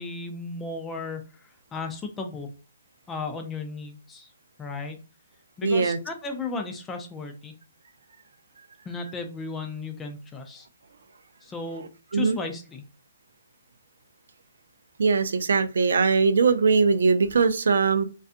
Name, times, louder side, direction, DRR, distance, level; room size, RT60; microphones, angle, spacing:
voice 1, 0.0-2.5 3.1-4.3 4.6-5.0 5.6-7.5 8.9-10.7 11.4-12.8, left 3 dB, 15° left, 5 dB, 0.4 m, -35 dB
voice 2, 5.6-6.0 12.1-12.4 15.0-18.0, right 5 dB, 75° right, 11 dB, 0.3 m, -21 dB
2.5 x 2.3 x 2.5 m, 0.34 s
hypercardioid pair, 145°, 0 cm